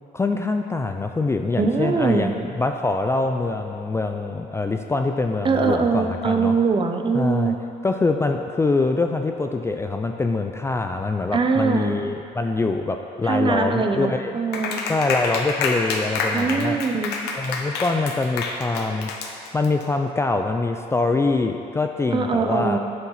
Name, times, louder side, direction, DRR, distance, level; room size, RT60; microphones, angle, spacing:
voice 1, 0.1-6.6 7.1-7.6 7.8-14.3 14.9-16.8 17.3-19.1 19.5-22.8, left 3 dB, 15° left, 5 dB, 0.4 m, -24 dB
voice 2, 1.6-2.3 5.4-7.6 11.3-11.9 13.2-14.8 16.3-17.1 22.1-22.8, right 4 dB, 30° right, 5 dB, 0.8 m, -22 dB
Clapping, 14.5-19.8, left 4 dB, 80° left, 1.1 m, -27 dB
8.3 x 7.8 x 5.7 m, 2.6 s
cardioid pair, 110°, 17 cm